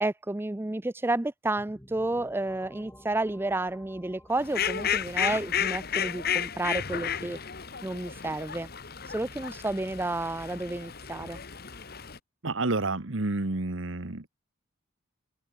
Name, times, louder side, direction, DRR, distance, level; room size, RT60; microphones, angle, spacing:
voice 1, 0.0-7.4 7.8-8.7 9.1-11.4, right 2 dB, 10° right, 0.4 m, -31 dB
sound 1, 1.6-11.1, left 1 dB, 10° left, 6.9 m, -56 dB
Fowl, 4.4-12.2, left 8 dB, 50° left, 1.7 m, -33 dB
voice 2, 12.4-14.3, right 2 dB, 65° right, 1.4 m, -29 dB
open air
head